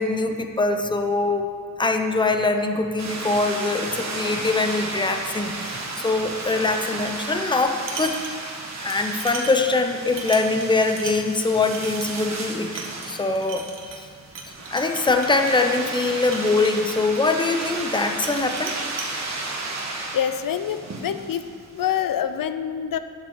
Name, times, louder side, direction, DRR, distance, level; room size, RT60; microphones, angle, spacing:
voice 1, 0.0-1.4 1.8-8.2 8.8-12.7 13.0-13.7 14.7-18.7, left 3 dB, 15° left, 5 dB, 0.6 m, -23 dB
sound 1, 3.0-21.9, right 2 dB, 55° right, 1.5 m, -33 dB
sound 2, 7.8-8.6 8.9-18.0 18.2-19.1, right 4 dB, 75° right, 1.3 m, -38 dB
voice 2, 20.1-21.4 21.7-23.0, left 9 dB, 80° left, 10 dB, 0.6 m, -26 dB
10.5 x 8.1 x 6.4 m, 2.2 s
wide cardioid pair, 170°, 33 cm